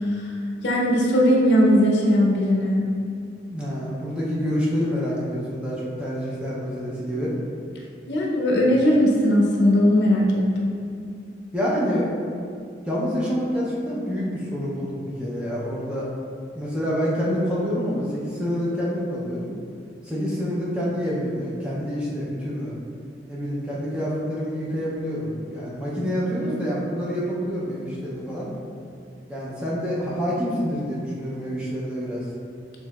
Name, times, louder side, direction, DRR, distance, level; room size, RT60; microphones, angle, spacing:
voice 1, 0.6-2.8 8.1-10.7, equal, 70° left, -2 dB, 0.7 m, -19 dB
voice 2, 3.5-7.3 11.5-12.1 12.9-16.1 16.5-19.5 20.0-22.8 23.3-28.5 29.3-32.2, equal, 5° right, -7 dB, 0.6 m, -27 dB
6.3 x 2.7 x 2.3 m, 2.4 s
head